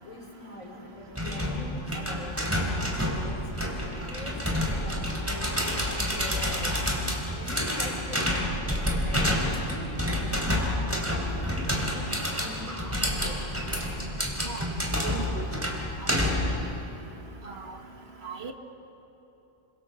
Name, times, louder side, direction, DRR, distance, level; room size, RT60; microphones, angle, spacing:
voice 1, 0.0-2.4 2.8-3.6 3.8-6.9 7.3-10.8 11.0-13.5, left 2 dB, 90° left, 1 dB, 4.3 m, -43 dB
sound 1, 1.2-16.6, equal, 10° right, 3.6 m, -29 dB
voice 2, 15.0-15.5 17.5-17.6 18.2-18.5, right 5 dB, 50° right, 4 dB, 1.9 m, -36 dB
28.0 x 25.5 x 6.9 m, 3.0 s
omnidirectional pair, 1.4 m